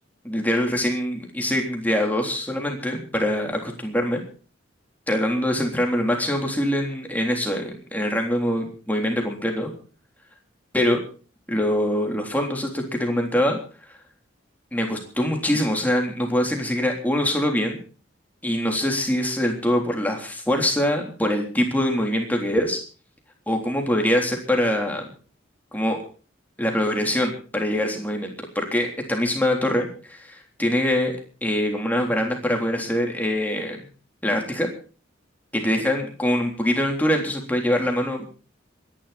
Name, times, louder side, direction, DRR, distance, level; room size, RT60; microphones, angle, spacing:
voice 1, 0.2-4.2 5.1-9.7 10.7-11.0 11.5-13.6 14.7-17.8 18.4-22.8 23.5-25.0 25.7-26.0 26.6-31.1 31.4-33.8 34.2-34.7 35.5-38.3, left 1 dB, 10° left, 2 dB, 3.5 m, -24 dB
26.0 x 11.0 x 4.2 m, 0.39 s
head